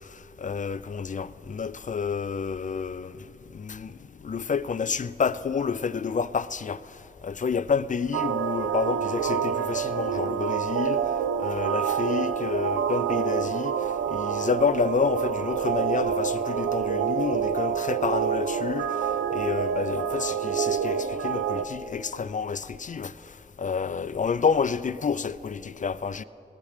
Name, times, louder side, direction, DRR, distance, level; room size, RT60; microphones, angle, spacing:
voice 1, 0.1-3.2 3.5-4.0 4.2-6.8 7.2-11.0 11.4-23.1 23.6-26.2, left 6 dB, 40° left, 0.4 m, -29 dB
sound 1, 8.1-21.7, right 8 dB, 85° right, 0.5 m, -27 dB
17.5 x 8.5 x 6.5 m
cardioid pair, 45°, 20 cm